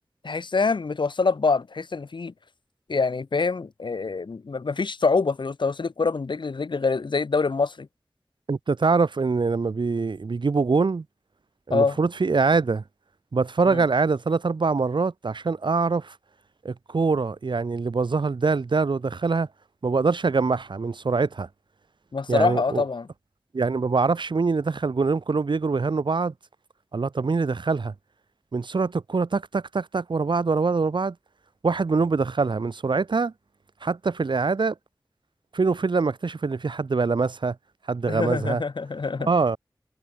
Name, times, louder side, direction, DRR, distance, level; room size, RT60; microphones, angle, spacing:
voice 1, 0.2-2.3 2.9-7.9 11.7-12.0 13.7-13.8 22.1-23.1 38.1-39.3, left 4 dB, 80° left, 0.8 m, -25 dB
voice 2, 8.5-11.0 11.7-12.8 13.3-16.1 16.6-19.5 19.8-21.5 22.3-22.8 23.5-26.3 26.9-27.9 28.5-31.2 31.6-33.3 33.8-34.7 35.5-37.6 37.9-38.6 39.2-39.6, right 4 dB, 85° right, 0.9 m, -24 dB
wide cardioid pair, 60°, 8 cm